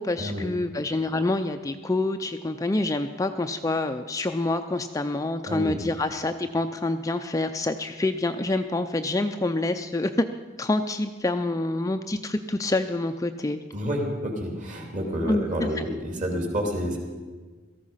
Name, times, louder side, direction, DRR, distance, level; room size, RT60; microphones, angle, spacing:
voice 1, 0.0-10.3 10.6-13.6 15.3-15.8, left 2 dB, 15° left, 7 dB, 0.4 m, -27 dB
voice 2, 13.7-17.0, equal, 40° right, 1 dB, 2.9 m, -29 dB
17.5 x 14.0 x 5.6 m, 1.4 s
head